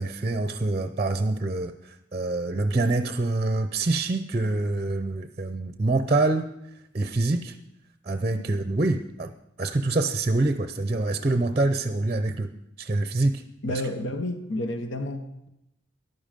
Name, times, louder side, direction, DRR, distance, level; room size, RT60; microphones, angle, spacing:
voice 1, 0.0-6.5 6.9-7.6 8.1-9.3 9.6-12.5 12.8-13.4 13.7-13.8, right 2 dB, 30° right, 9 dB, 0.6 m, -25 dB
voice 2, 13.6-15.5, left 1 dB, 80° left, 7 dB, 1.1 m, -31 dB
14.5 x 11.0 x 5.2 m, 0.82 s
head